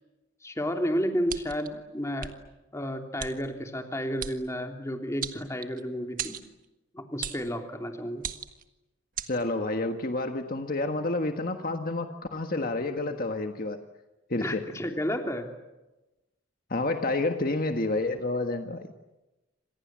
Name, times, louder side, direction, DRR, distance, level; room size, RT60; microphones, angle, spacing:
voice 1, 0.4-2.3 2.7-6.4 6.9-8.3 14.4-15.5, equal, 15° left, 4 dB, 3.1 m, -31 dB
sound 1, 1.3-1.7 2.2-2.3 3.2-3.3 4.2-4.4 5.2-5.8 6.2-6.5 7.2-7.5 8.2-8.6 9.2-9.3, right 8 dB, 45° right, 1.6 m, -35 dB
voice 2, 9.3-13.8 14.3-14.6 16.7-18.9, left 2 dB, 45° left, 5 dB, 1.6 m, -29 dB
29.0 x 27.0 x 7.6 m, 1.0 s
head